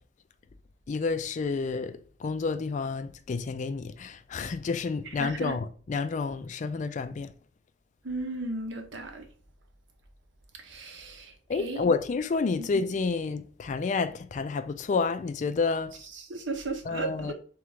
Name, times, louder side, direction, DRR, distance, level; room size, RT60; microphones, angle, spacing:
voice 1, 0.9-7.3 11.5-16.0 16.8-17.3, left 4 dB, 40° left, 0.3 m, -30 dB
voice 2, 5.2-5.6 8.0-9.3 10.6-11.8 12.6-12.7 16.1-17.3, right 2 dB, 90° right, 0.9 m, -35 dB
3.7 x 3.0 x 3.4 m
head